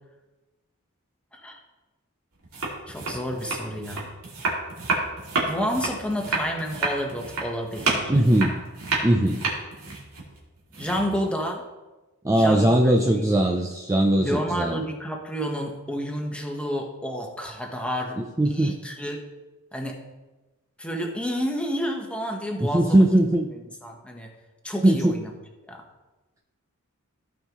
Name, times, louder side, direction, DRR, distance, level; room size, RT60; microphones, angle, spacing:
sound 1, 2.4-11.3, right 3 dB, 75° right, 2.3 m, -29 dB
voice 1, 2.9-4.2 5.3-8.2 10.8-11.6 12.3-12.8 13.1-13.3 14.2-18.2 18.4-19.2 19.7-20.0 20.8-23.0 23.8-24.3 24.6-25.3 25.7-25.8, equal, 5° left, 1 dB, 1.2 m, -30 dB
voice 2, 8.1-8.6 9.0-9.4 12.2-14.8 18.2-18.7 22.6-23.5 24.8-25.2, right 1 dB, 15° right, 1 dB, 0.5 m, -20 dB
15.5 x 5.4 x 3.1 m, 1.1 s
head